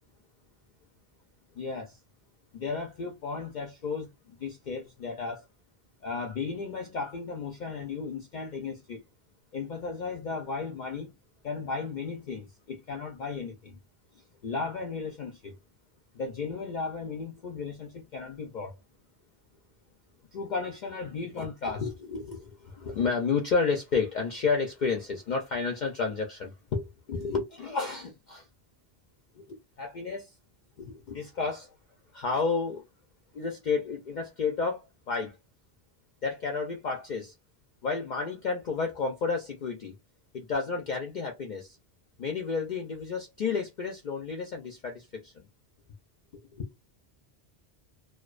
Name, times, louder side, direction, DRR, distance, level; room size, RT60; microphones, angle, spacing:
voice 1, 1.5-2.0 2.5-5.5 6.0-9.0 9.5-11.1 11.4-13.8 14.1-15.6 16.1-18.8 20.3-28.5 29.4-30.3 30.8-31.7 32.1-32.9 33.3-35.4 36.2-37.3 37.8-40.0 40.3-41.8 42.2-45.5 46.5-46.7, left 4 dB, 55° left, 0.5 m, -32 dB
2.4 x 2.2 x 2.3 m
omnidirectional pair, 1.1 m